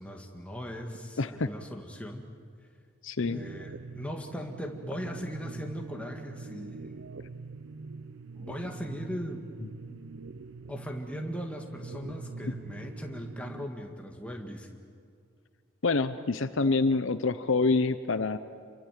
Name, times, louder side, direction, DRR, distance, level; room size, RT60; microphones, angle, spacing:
voice 1, 0.0-2.3 3.3-7.2 8.3-9.4 9.9-10.0 10.7-14.7, equal, 5° left, 2 dB, 1.9 m, -39 dB
voice 2, 1.2-1.5 3.0-3.4 15.8-18.4, left 3 dB, 65° left, 12 dB, 0.7 m, -26 dB
sound 1, 3.3-13.7, right 3 dB, 65° right, 0.7 m, -43 dB
27.5 x 23.5 x 7.6 m, 2.2 s
head